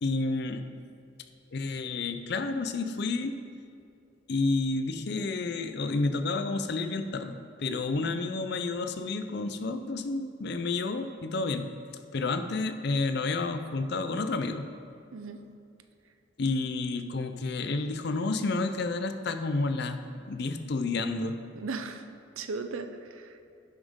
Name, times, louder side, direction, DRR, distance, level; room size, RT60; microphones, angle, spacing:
voice 1, 0.0-0.7 1.5-3.4 4.3-11.7 12.1-14.7 16.4-20.0 20.3-21.4, left 3 dB, 50° left, 8 dB, 0.5 m, -30 dB
voice 2, 15.1-15.4 21.5-22.0 22.4-23.4, right 4 dB, 80° right, 8 dB, 0.6 m, -37 dB
10.5 x 7.2 x 3.6 m, 2.5 s
head